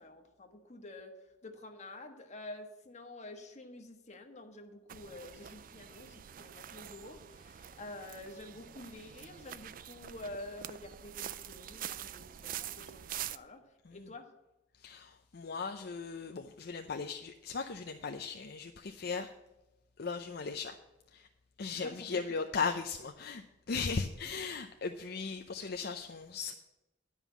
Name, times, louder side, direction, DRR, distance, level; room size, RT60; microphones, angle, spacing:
voice 1, 0.0-14.3 21.7-22.0, left 2 dB, 40° left, 4 dB, 1.4 m, -49 dB
sound 1, 4.9-13.4, right 10 dB, 50° right, 0.4 m, -45 dB
voice 2, 14.8-19.3 20.0-20.8 21.1-21.3 21.6-26.5, left 5 dB, 60° left, 4 dB, 0.6 m, -37 dB
11.0 x 5.5 x 8.3 m, 0.99 s
head